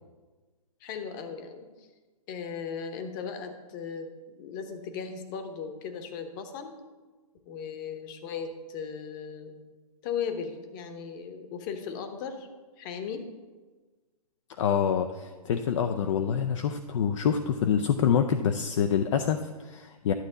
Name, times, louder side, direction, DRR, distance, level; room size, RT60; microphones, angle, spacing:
voice 1, 0.8-1.9 2.3-6.8 7.5-9.6 10.0-12.5 12.8-13.2, left 6 dB, 30° left, 7 dB, 1.0 m, -37 dB
voice 2, 14.6-20.1, left 7 dB, 50° left, 6 dB, 0.5 m, -26 dB
11.5 x 6.8 x 3.9 m, 1.3 s
hypercardioid pair, 140°, 20 cm